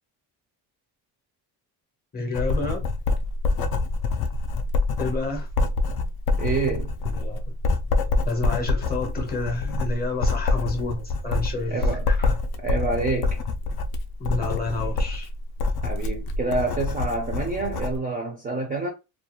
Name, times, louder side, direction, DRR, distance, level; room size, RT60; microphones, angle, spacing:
voice 1, 2.1-2.9 5.0-5.5 7.1-7.5 8.2-12.4 14.2-15.3, left 3 dB, 25° left, 0.6 m, -30 dB
Writing, 2.3-18.0, left 3 dB, 65° left, 0.5 m, -26 dB
voice 2, 6.4-6.9 11.7-12.1 12.6-13.4 15.8-18.9, right 3 dB, 25° right, 0.4 m, -27 dB
2.3 x 2.2 x 2.8 m
cardioid pair, 175°, 41 cm